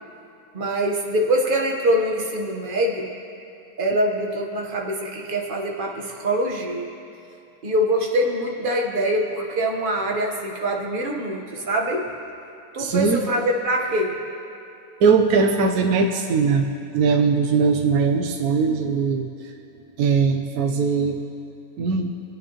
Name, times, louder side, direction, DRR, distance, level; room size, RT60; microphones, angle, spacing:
voice 1, 0.5-3.1 3.8-6.9 7.6-12.1 12.7-14.2, right 1 dB, 35° right, 0 dB, 1.2 m, -24 dB
voice 2, 12.8-13.2 15.0-16.7 16.9-19.3 20.0-21.2 21.8-22.1, right 5 dB, 65° right, 3 dB, 1.1 m, -20 dB
24.5 x 9.3 x 3.0 m, 2.7 s
omnidirectional pair, 1.8 m